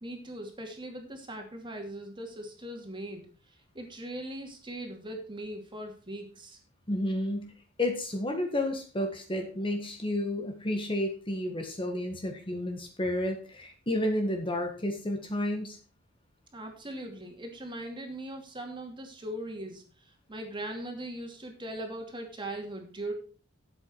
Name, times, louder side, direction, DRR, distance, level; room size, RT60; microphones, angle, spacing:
voice 1, 0.0-3.3 3.7-6.6 16.5-23.1, right 1 dB, 25° right, 3 dB, 2.7 m, -40 dB
voice 2, 6.9-7.5 7.8-15.8, left 1 dB, 25° left, 4 dB, 1.6 m, -31 dB
12.5 x 7.9 x 4.6 m, 0.37 s
head